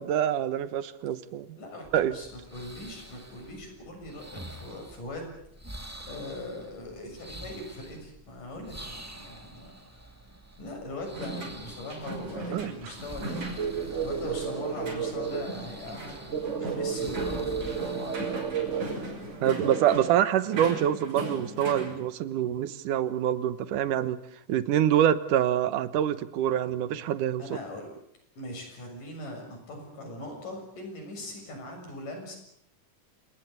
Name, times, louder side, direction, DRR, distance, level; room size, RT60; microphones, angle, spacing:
voice 1, 0.0-1.6 1.9-2.1 12.5-12.7 19.4-24.2 24.5-27.4, right 10 dB, 80° right, 14 dB, 2.6 m, -26 dB
voice 2, 1.6-5.4 6.1-10.1 10.6-13.4 14.0-16.1 16.6-17.8 18.1-18.7 27.4-27.9 28.4-32.4, left 1 dB, 80° left, 3 dB, 8.4 m, -40 dB
sound 1, 1.8-19.4, right 1 dB, 10° right, 1.0 m, -47 dB
sound 2, 11.1-21.9, right 1 dB, 65° right, 7.2 m, -39 dB
Buddhist chants in Labrang Monastery Gansu China, 13.6-20.0, right 6 dB, 45° right, 0.9 m, -33 dB
28.0 x 18.5 x 8.2 m, 0.73 s
omnidirectional pair, 3.7 m